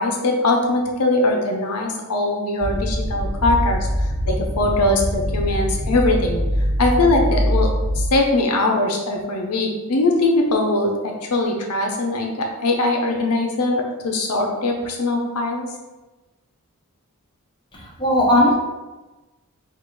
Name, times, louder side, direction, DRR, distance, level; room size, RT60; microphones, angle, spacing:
voice 1, 0.0-3.9 4.3-6.4 6.8-15.7, left 2 dB, 85° left, 1 dB, 0.7 m, -21 dB
sound 1, 2.6-8.1, equal, 15° right, 1.1 m, -23 dB
voice 2, 17.7-18.5, left 1 dB, 20° left, -4 dB, 0.9 m, -17 dB
4.0 x 2.5 x 4.5 m, 1.1 s
head